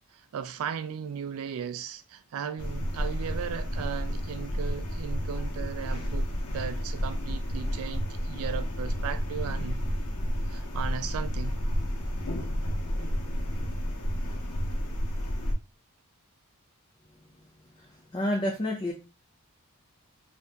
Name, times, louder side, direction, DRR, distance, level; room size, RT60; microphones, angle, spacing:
voice 1, 0.1-9.8 10.5-11.6, right 7 dB, 75° right, 0.3 m, -36 dB
sound 1, 2.6-15.5, equal, 85° left, 0.9 m, -31 dB
voice 2, 17.8-18.9, left 1 dB, 20° left, 0.5 m, -30 dB
2.8 x 2.5 x 3.4 m
head